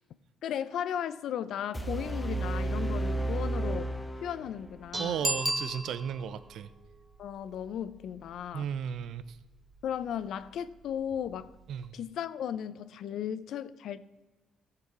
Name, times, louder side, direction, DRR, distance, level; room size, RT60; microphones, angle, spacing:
voice 1, 0.4-3.9 4.2-5.3 7.2-8.7 9.8-11.5 11.9-14.2, left 9 dB, 75° left, 0.6 m, -36 dB
sound 1, 1.7-4.7, right 2 dB, 10° left, 1.3 m, -32 dB
Dishes pots and pans, 4.5-11.9, right 3 dB, 35° right, 1.8 m, -49 dB
voice 2, 5.0-6.7 8.5-9.4 11.7-11.9, right 8 dB, 75° right, 0.6 m, -35 dB
Bicycle bell, 5.2-6.4 11.8-11.9, right 1 dB, 10° right, 0.6 m, -32 dB
15.0 x 6.8 x 4.8 m
cardioid pair, 90°, 0 cm